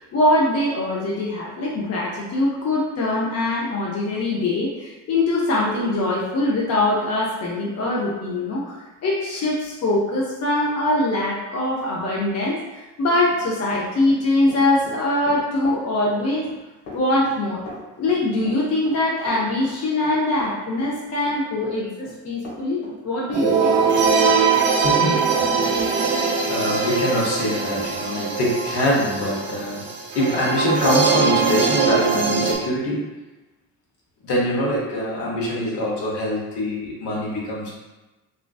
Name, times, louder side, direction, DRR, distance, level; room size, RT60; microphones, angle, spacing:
voice 1, 0.0-8.8 9.0-16.5 16.9-17.6 18.0-23.7, left 2 dB, 35° left, -4 dB, 0.6 m, -22 dB
Run, 13.1-24.2 24.5-25.5, left 2 dB, 85° left, 0.8 m, -40 dB
sound 1, 23.3-32.6, right 5 dB, 25° right, 0.4 m, -21 dB
voice 2, 24.7-25.7 26.5-29.9 30.1-33.1 34.2-37.7, left 1 dB, 60° left, -4 dB, 1.0 m, -24 dB
2.5 x 2.1 x 2.3 m, 1.1 s
hypercardioid pair, 55°, 47 cm